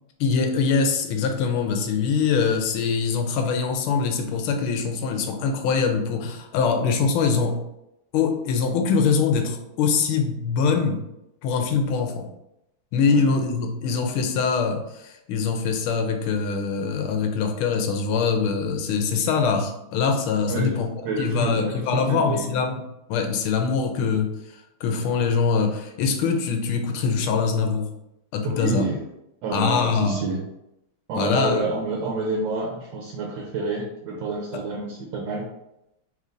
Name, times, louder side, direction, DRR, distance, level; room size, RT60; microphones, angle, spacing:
voice 1, 0.2-7.6 8.1-11.0 11.4-12.3 12.9-20.9 21.2-22.8 23.1-27.9 28.3-28.8 29.5-30.3 31.1-31.6, left 5 dB, 90° left, 4 dB, 1.5 m, -23 dB
voice 2, 21.0-22.5 28.4-29.0 29.4-30.4 31.1-35.5, right 3 dB, 75° right, -1 dB, 1.3 m, -28 dB
4.3 x 3.3 x 2.5 m, 0.85 s
omnidirectional pair, 2.3 m